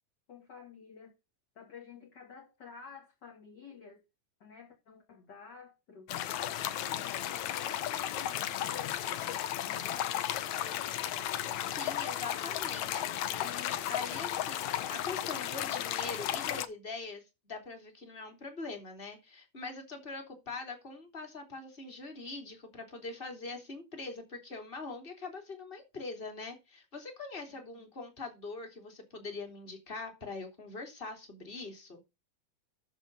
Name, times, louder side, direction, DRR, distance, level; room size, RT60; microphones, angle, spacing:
voice 1, 0.3-1.1 1.5-4.0 4.4-6.2 6.9-10.9 27.5-27.9, left 6 dB, 35° left, 2.2 m, -51 dB
sound 1, 6.1-16.7, left 12 dB, 70° left, 1.8 m, -34 dB
voice 2, 11.8-32.0, left 3 dB, 15° left, 2.8 m, -43 dB
13.5 x 4.8 x 5.3 m
omnidirectional pair, 4.2 m